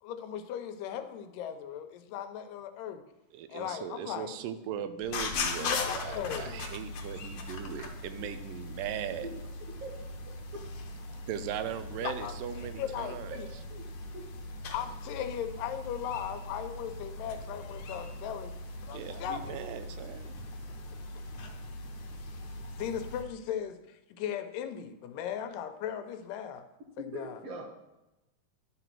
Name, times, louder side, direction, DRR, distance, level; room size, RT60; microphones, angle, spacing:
voice 1, 0.0-3.0 3.5-4.4 5.6-6.7 12.0-12.3 12.8-13.5 14.7-18.5 18.8-19.6 22.8-26.6 27.0-27.4, left 9 dB, 85° left, 8 dB, 2.3 m, -37 dB
voice 2, 3.3-9.3 11.3-13.6 18.9-20.3, right 9 dB, 90° right, 11 dB, 2.3 m, -39 dB
sound 1, 5.0-23.2, left 3 dB, 65° left, 1.9 m, -40 dB
voice 3, 10.3-10.6 13.7-13.8 14.1-14.3 27.0-27.7, equal, 60° right, 1 dB, 1.8 m, -41 dB
11.0 x 4.1 x 6.0 m, 0.95 s
omnidirectional pair, 3.7 m